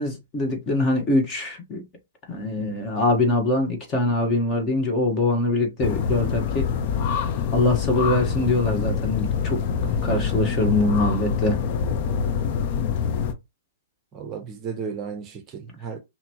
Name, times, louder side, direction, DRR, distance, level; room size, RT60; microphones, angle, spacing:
voice 1, 0.0-1.8 2.3-6.7 7.5-9.6 10.0-11.6, left 2 dB, 25° left, 1.3 m, -23 dB
sound 1, 5.8-13.3, left 7 dB, 45° left, 0.7 m, -25 dB
voice 2, 14.1-16.0, right 6 dB, 25° right, 0.7 m, -34 dB
5.7 x 2.1 x 2.9 m
hypercardioid pair, 135°, 0 cm